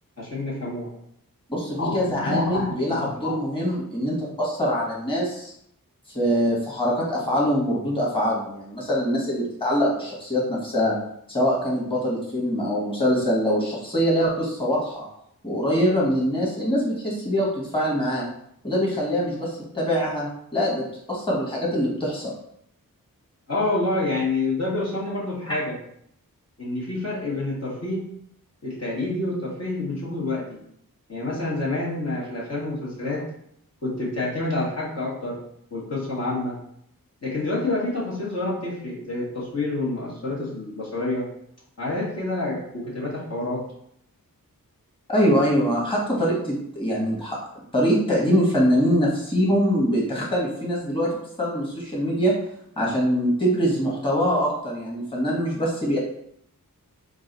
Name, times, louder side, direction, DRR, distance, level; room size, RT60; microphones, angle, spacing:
voice 1, 0.2-0.9 1.7-3.3 23.5-25.7 26.6-28.0 28.6-30.4 31.1-33.2 33.8-35.4 35.7-36.6 37.2-41.2 41.8-43.6, left 2 dB, 45° left, -6 dB, 1.4 m, -28 dB
voice 2, 1.5-5.5 6.1-11.0 11.3-15.0 15.4-18.3 18.6-22.3 25.5-25.6 45.1-47.4 47.7-51.1 51.4-52.3 52.8-56.0, equal, 15° left, -5 dB, 1.5 m, -23 dB
3.8 x 2.5 x 4.0 m, 0.71 s
cardioid pair, 50°, 35 cm